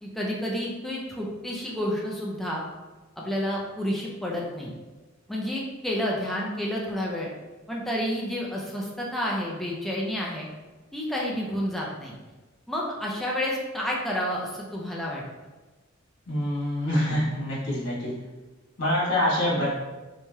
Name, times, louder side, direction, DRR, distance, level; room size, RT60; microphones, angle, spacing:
voice 1, 0.0-2.6 3.2-4.7 5.3-7.3 7.7-10.5 10.9-12.2 12.7-15.2, equal, ahead, -4 dB, 0.3 m, -30 dB
voice 2, 16.3-18.1 18.8-19.7, left 1 dB, 60° left, -7 dB, 1.3 m, -25 dB
3.1 x 2.8 x 2.2 m, 1.2 s
head